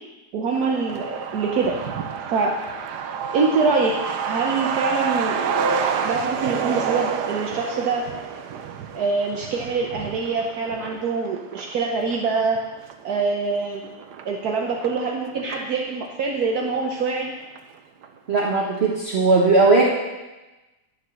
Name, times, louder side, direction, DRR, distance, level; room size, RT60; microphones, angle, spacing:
voice 1, 0.3-1.7 2.3-2.5 3.3-4.0 4.2-5.4 6.0-8.1 8.9-12.6 13.0-13.9 14.2-17.3, right 4 dB, 70° right, 0 dB, 1.4 m, -24 dB
Truck, 0.5-15.7 16.1-16.2 16.4-17.3 17.6-17.7 18.0-18.4, right 6 dB, 90° right, 1.4 m, -29 dB
voice 2, 18.3-19.8, right 3 dB, 45° right, -3 dB, 1.3 m, -18 dB
11.0 x 7.1 x 6.3 m, 1.1 s
omnidirectional pair, 1.7 m